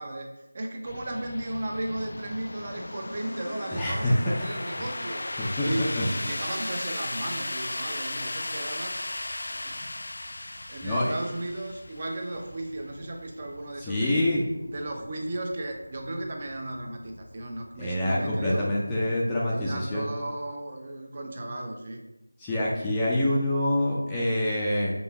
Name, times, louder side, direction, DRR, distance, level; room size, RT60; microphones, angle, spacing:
voice 1, 0.0-5.3 5.6-9.0 9.5-10.0 10.3-10.4 10.7-14.2 14.7-18.7 19.5-22.0, right 1 dB, 30° right, 3 dB, 0.8 m, -35 dB
sound 1, 0.8-19.5, left 2 dB, 55° left, 0.4 m, -37 dB
voice 2, 3.7-4.1 5.4-6.1 10.8-11.1 13.8-14.4 17.8-20.0 22.4-24.9, left 1 dB, 10° left, -7 dB, 0.6 m, -26 dB
5.7 x 3.7 x 5.7 m, 0.98 s
figure-of-eight pair, 175°, 0 cm